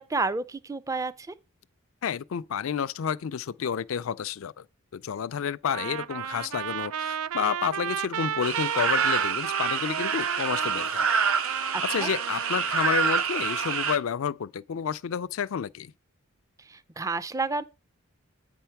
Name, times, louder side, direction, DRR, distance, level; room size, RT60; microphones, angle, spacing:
voice 1, 0.0-1.3 11.7-12.1 16.6-17.6, right 3 dB, 15° right, 0.4 m, -31 dB
voice 2, 2.0-4.6 4.9-11.1 11.9-15.9, left 7 dB, 65° left, 0.4 m, -30 dB
Trumpet, 5.7-12.7, right 8 dB, 90° right, 0.4 m, -33 dB
sound 1, 8.4-14.0, right 6 dB, 70° right, 0.9 m, -27 dB
8.6 x 4.4 x 5.8 m
head